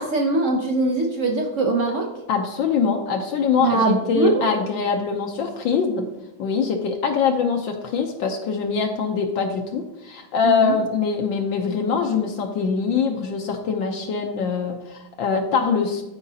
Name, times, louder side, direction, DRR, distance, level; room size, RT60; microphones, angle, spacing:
voice 1, 0.0-2.1 3.6-4.5 10.4-10.8, right 3 dB, 65° right, 2 dB, 0.8 m, -22 dB
voice 2, 2.3-6.1 6.4-16.0, left 6 dB, 70° left, 3 dB, 1.5 m, -23 dB
13.5 x 4.9 x 2.8 m, 0.95 s
omnidirectional pair, 2.2 m